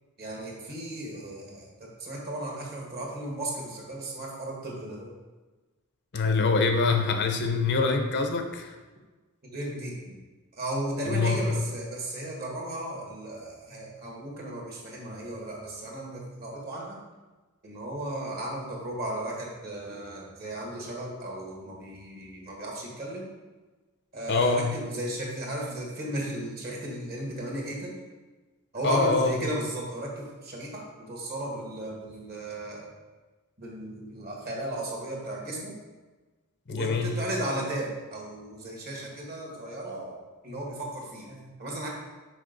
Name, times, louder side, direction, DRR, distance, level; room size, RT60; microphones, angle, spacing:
voice 1, 0.2-5.1 9.5-10.1 10.5-17.0 17.6-23.3 24.1-27.9 28.7-32.9 33.6-35.7 36.7-41.9, right 1 dB, 45° right, -2 dB, 1.8 m, -35 dB
voice 2, 6.1-8.7 11.1-11.5 24.3-24.7 28.8-29.3 36.7-37.2, left 4 dB, 55° left, 5 dB, 0.7 m, -25 dB
6.3 x 5.2 x 3.9 m, 1.3 s
head